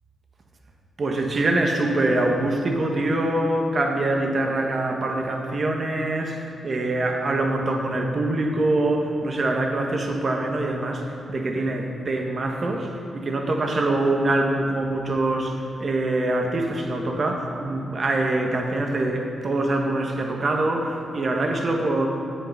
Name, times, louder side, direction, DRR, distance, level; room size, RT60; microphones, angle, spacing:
voice 1, 1.0-11.0 11.3-12.9 13.1-15.5 15.8-22.1, right 2 dB, 50° right, 2 dB, 1.5 m, -24 dB
8.8 x 8.4 x 5.8 m, 2.6 s
supercardioid pair, 50°, 0 cm